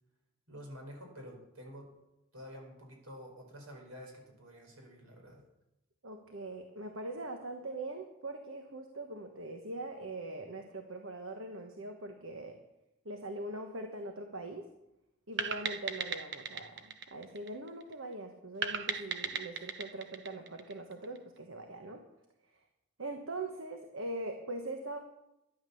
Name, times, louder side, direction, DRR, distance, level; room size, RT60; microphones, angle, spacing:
voice 1, 0.5-1.9 2.3-5.4, equal, 85° right, 1 dB, 4.7 m, -49 dB
voice 2, 6.0-12.6 13.0-14.7 15.3-22.0 23.0-25.0, right 2 dB, 70° right, 4 dB, 1.3 m, -42 dB
sound 1, 15.4-17.9 18.6-21.2, right 6 dB, 55° right, 0.9 m, -37 dB
12.5 x 10.5 x 7.0 m, 0.91 s
head